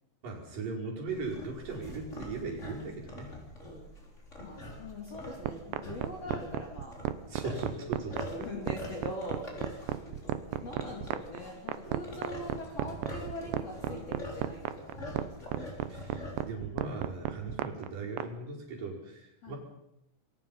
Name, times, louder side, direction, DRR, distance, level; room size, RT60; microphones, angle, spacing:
voice 1, 0.2-3.3 7.3-8.3 15.9-19.6, right 3 dB, 50° right, -2 dB, 6.7 m, -38 dB
sound 1, 1.1-16.5, left 1 dB, 15° left, 3.9 m, -45 dB
voice 2, 4.4-7.0 7.4-7.9 8.2-9.9 10.6-15.8 19.4-19.5, left 1 dB, 40° left, 0 dB, 3.6 m, -42 dB
sound 2, 5.4-18.3, right 13 dB, 85° right, 3.2 m, -33 dB
28.0 x 22.0 x 5.6 m, 0.82 s
omnidirectional pair, 4.9 m